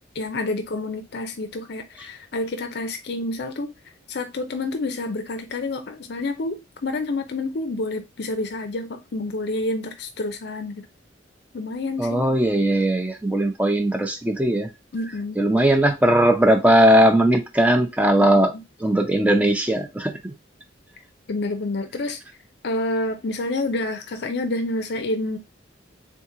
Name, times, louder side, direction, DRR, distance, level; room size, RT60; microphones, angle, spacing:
voice 1, 0.1-3.7 4.1-10.9 11.5-12.3 14.9-15.4 18.2-18.3 21.3-22.2 22.6-25.4, left 2 dB, 60° left, 0.5 m, -28 dB
voice 2, 12.0-14.7 15.4-18.5 18.8-20.3, right 1 dB, 10° right, 0.5 m, -19 dB
3.7 x 2.9 x 3.6 m
head